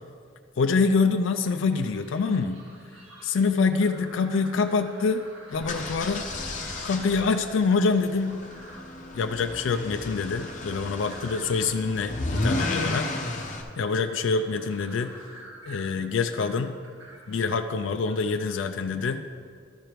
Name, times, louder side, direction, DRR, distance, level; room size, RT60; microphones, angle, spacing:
voice 1, 0.6-2.6 3.2-5.2 5.5-6.3 6.8-8.4 9.1-13.1 13.8-15.1 15.7-16.7 17.3-19.2, left 4 dB, 70° left, 7 dB, 0.4 m, -25 dB
sound 1, 1.7-18.7, right 1 dB, 75° right, 1.7 m, -48 dB
sound 2, 5.5-13.6, left 2 dB, 40° left, 0.9 m, -33 dB
13.0 x 5.0 x 4.5 m, 2.1 s
head